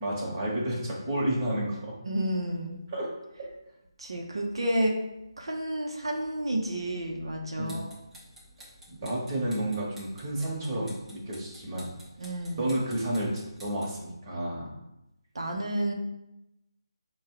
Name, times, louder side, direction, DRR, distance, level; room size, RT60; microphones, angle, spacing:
voice 1, 0.0-1.9 2.9-3.1 3.3-3.5 7.6-7.8 8.6-11.9 12.5-14.7, right 1 dB, 25° right, -4 dB, 1.2 m, -31 dB
voice 2, 2.0-2.8 4.0-5.0 5.4-7.9 12.2-12.7 15.3-15.9, right 1 dB, 70° right, 1 dB, 0.8 m, -30 dB
sound 1, 7.5-14.0, equal, 5° right, 0.7 m, -52 dB
4.6 x 2.3 x 4.8 m, 0.90 s
figure-of-eight pair, 155°, 3 cm